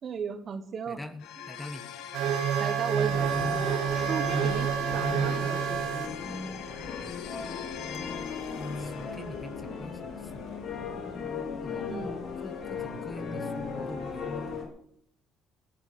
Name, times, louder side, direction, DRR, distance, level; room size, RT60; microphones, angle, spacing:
voice 1, 0.0-1.0 2.6-3.3 3.9-5.8 11.9-12.2, right 6 dB, 45° right, 10 dB, 1.2 m, -35 dB
voice 2, 0.9-1.8 8.8-10.5 11.6-14.6, left 1 dB, 10° left, 8 dB, 1.4 m, -44 dB
sound 1, 1.2-12.3, left 8 dB, 80° left, 1.8 m, -43 dB
sound 2, 2.1-6.1 7.9-8.0 12.8-12.9, right 9 dB, 85° right, 1.4 m, -28 dB
sound 3, 2.9-14.6, left 4 dB, 55° left, 3.8 m, -36 dB
14.0 x 8.2 x 8.5 m, 0.67 s
cardioid pair, 125°, 0 cm